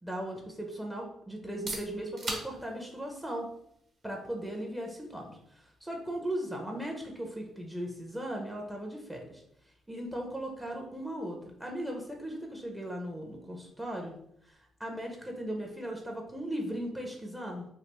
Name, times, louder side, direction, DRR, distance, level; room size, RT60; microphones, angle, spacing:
voice 1, 0.0-3.5 4.0-9.4 9.9-14.1 14.4-17.7, right 1 dB, 10° right, 1 dB, 0.6 m, -38 dB
sound 1, 1.4-17.0, right 2 dB, 50° right, 1.1 m, -49 dB
3.3 x 2.4 x 2.9 m, 0.74 s
cardioid pair, 90°, 0 cm